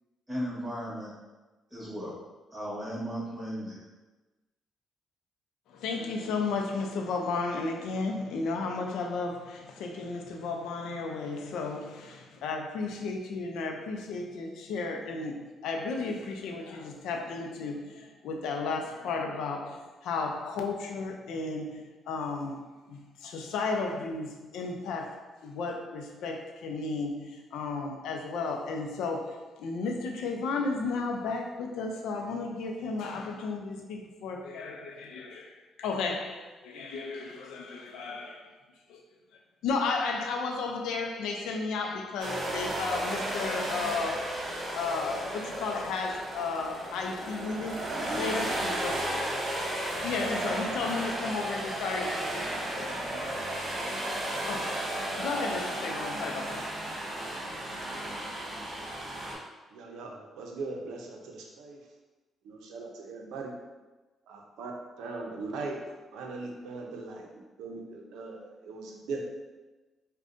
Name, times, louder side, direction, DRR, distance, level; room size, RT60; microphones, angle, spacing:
voice 1, 0.3-1.1 1.7-2.2 2.5-3.8, equal, 5° right, 1.1 m, -35 dB
voice 2, 5.7-38.5 38.9-39.0 39.6-44.4 44.7-47.9 48.2-49.8 50.0-53.5 54.5-56.6, left 4 dB, 85° left, 0.4 m, -34 dB
sound 1, 42.2-59.3, right 1 dB, 40° right, 1.2 m, -34 dB
voice 3, 59.7-61.8 62.4-63.5 64.3-64.7 65.0-69.3, right 3 dB, 85° right, 0.5 m, -39 dB
4.9 x 2.2 x 2.5 m
cardioid pair, 90°, 0 cm